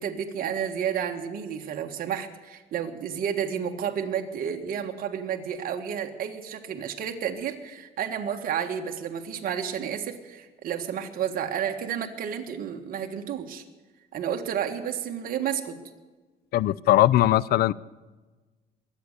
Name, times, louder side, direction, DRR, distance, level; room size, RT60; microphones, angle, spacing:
voice 1, 0.0-13.6 14.1-15.8, right 8 dB, 60° right, 4 dB, 1.6 m, -31 dB
voice 2, 16.5-17.7, left 14 dB, 65° left, 22 dB, 0.5 m, -20 dB
22.5 x 8.6 x 6.7 m, 1.3 s
cardioid pair, 110°, 17 cm